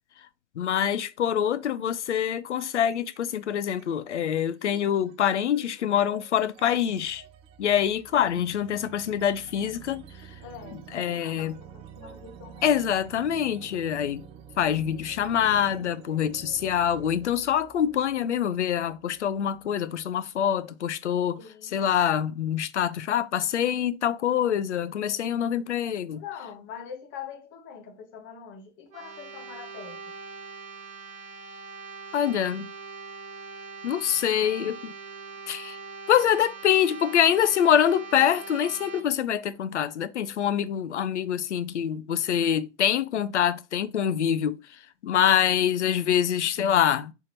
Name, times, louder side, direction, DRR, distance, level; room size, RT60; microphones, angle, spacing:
voice 1, 0.6-7.2 7.6-10.0 10.9-11.5 12.6-14.2 14.6-21.4 21.7-26.2 32.1-32.7 33.8-34.9 35.5-35.8 36.1-47.1, left 9 dB, 70° left, 0.6 m, -25 dB
sound 1, 2.8-3.4 3.7-20.3, right 8 dB, 20° right, 0.3 m, -49 dB
voice 2, 8.1-8.5 10.4-10.8 11.2-12.7 21.4-21.9 26.1-30.1, left 7 dB, 35° left, 1.1 m, -43 dB
sound 2, 28.9-39.0, right 4 dB, 75° right, 1.1 m, -42 dB
4.5 x 3.6 x 2.9 m
figure-of-eight pair, 90°, 36 cm